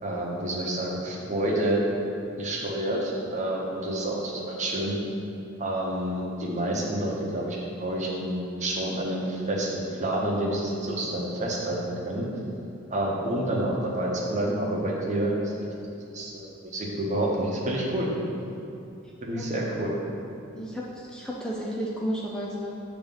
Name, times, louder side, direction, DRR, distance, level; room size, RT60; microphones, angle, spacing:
voice 1, 0.0-1.8 2.4-4.9 5.6-12.3 12.9-15.7 16.1-18.1 19.2-19.9, right 1 dB, 35° right, -3 dB, 1.0 m, -28 dB
voice 2, 19.0-19.7 20.5-22.7, equal, 5° left, -4 dB, 0.4 m, -33 dB
7.4 x 3.1 x 5.4 m, 2.7 s
head